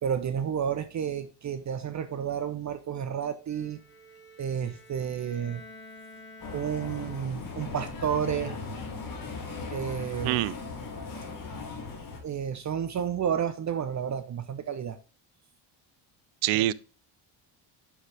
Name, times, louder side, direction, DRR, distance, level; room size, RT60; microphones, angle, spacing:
voice 1, 0.0-3.8 4.4-5.6 6.5-8.6 9.7-10.4 12.2-15.0 16.5-16.6, right 8 dB, 35° right, 0.8 m, -31 dB
Bowed string instrument, 3.5-7.6, left 2 dB, 20° left, 2.1 m, -50 dB
sound 1, 6.4-12.2, left 4 dB, 40° left, 2.8 m, -38 dB
voice 2, 10.2-10.5 16.4-16.7, right 15 dB, 70° right, 0.7 m, -25 dB
7.1 x 6.2 x 3.4 m
cardioid pair, 110°, 49 cm